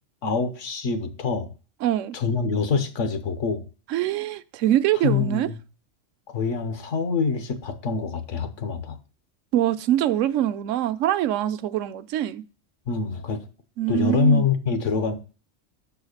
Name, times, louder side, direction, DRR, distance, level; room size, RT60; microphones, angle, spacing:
voice 1, 0.2-1.5 2.1-3.6 5.0-5.5 6.3-9.0 12.9-13.4 13.9-15.2, left 5 dB, 75° left, 1.3 m, -25 dB
voice 2, 1.8-2.2 3.9-5.5 9.5-12.4 13.8-14.5, right 12 dB, 80° right, 0.9 m, -23 dB
6.3 x 4.8 x 6.4 m
omnidirectional pair, 1.3 m